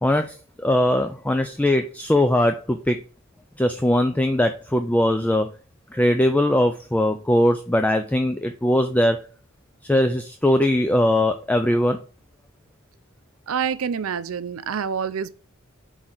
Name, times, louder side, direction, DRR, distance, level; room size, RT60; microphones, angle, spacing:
voice 1, 0.0-3.0 3.6-5.5 5.9-9.2 9.8-12.0, left 1 dB, 5° left, 0.3 m, -20 dB
voice 2, 13.5-15.3, right 7 dB, 75° right, 0.5 m, -27 dB
4.9 x 4.0 x 5.8 m
head